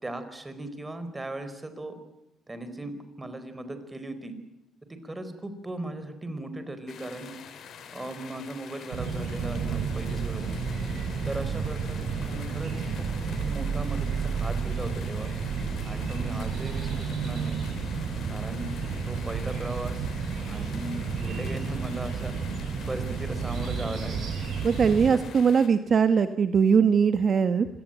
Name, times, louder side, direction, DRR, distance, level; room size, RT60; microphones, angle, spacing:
voice 1, 0.0-1.9 2.5-2.9 3.2-4.4 4.9-7.3 7.9-10.6 11.2-13.1 13.4-15.3 15.8-17.6 18.3-18.7 19.0-20.1 20.5-22.3 22.9-24.3 25.1-25.2, right 2 dB, 20° right, 10 dB, 4.7 m, -37 dB
sound 1, 6.9-25.7, left 7 dB, 70° left, 3.7 m, -46 dB
sound 2, 8.9-25.1, right 5 dB, 70° right, 6.5 m, -31 dB
voice 2, 24.6-27.7, right 6 dB, 50° right, 10 dB, 1.2 m, -21 dB
26.0 x 18.5 x 9.1 m, 0.89 s
cardioid pair, 90°, 0 cm